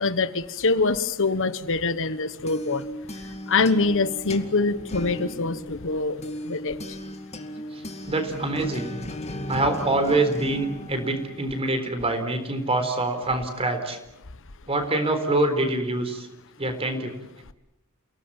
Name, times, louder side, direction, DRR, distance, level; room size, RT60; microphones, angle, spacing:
voice 1, 0.0-2.8 3.1-7.0, left 3 dB, 60° left, 13 dB, 1.2 m, -25 dB
sound 1, 2.1-11.8, left 1 dB, 30° left, 2.4 m, -36 dB
voice 2, 7.7-9.0 9.5-14.0 14.7-16.3 16.6-17.1, right 2 dB, 25° right, 8 dB, 4.0 m, -25 dB
29.0 x 18.5 x 8.9 m, 0.89 s
head